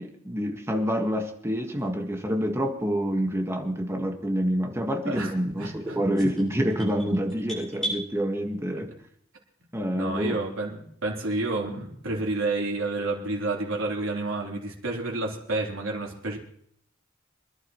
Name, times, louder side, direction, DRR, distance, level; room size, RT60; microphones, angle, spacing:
voice 1, 0.0-8.9 9.7-10.4, equal, 15° right, 3 dB, 1.7 m, -27 dB
voice 2, 5.1-6.0 9.9-16.4, right 2 dB, 75° right, -2 dB, 3.5 m, -30 dB
sound 1, 6.1-8.0, right 1 dB, 5° left, 7.3 m, -35 dB
25.5 x 11.5 x 3.1 m, 0.65 s
head